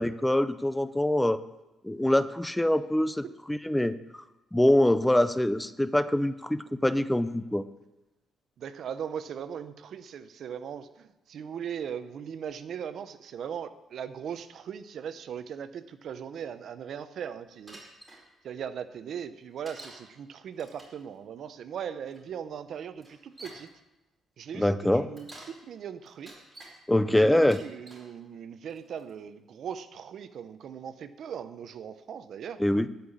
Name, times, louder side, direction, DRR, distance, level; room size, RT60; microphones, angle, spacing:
voice 1, 0.0-1.4 1.8-4.0 4.5-7.6 24.5-25.1 26.9-27.6 32.6-32.9, left 1 dB, 5° left, 14 dB, 0.5 m, -24 dB
voice 2, 8.6-17.8 18.4-23.7 24.4-26.3 27.2-32.6, right 8 dB, 65° right, 12 dB, 0.7 m, -39 dB
Bicycle, 17.7-18.2 19.6-20.0 20.5-21.0 22.1-22.2 23.0-23.7 25.0-25.6 26.1-26.7 27.4-28.1 28.7-29.1, right 1 dB, 15° right, 4.6 m, -48 dB
13.0 x 5.8 x 8.5 m, 0.98 s
cardioid pair, 90°, 0 cm